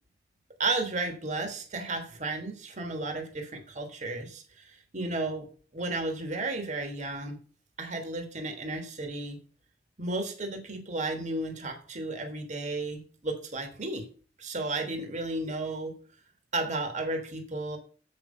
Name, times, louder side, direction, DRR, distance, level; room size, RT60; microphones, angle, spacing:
voice 1, 0.6-5.5 5.7-7.4 7.8-9.4 10.0-14.0 14.4-15.9 16.5-17.8, right 2 dB, 45° right, 4 dB, 1.4 m, -33 dB
7.6 x 5.4 x 5.3 m, 0.40 s
head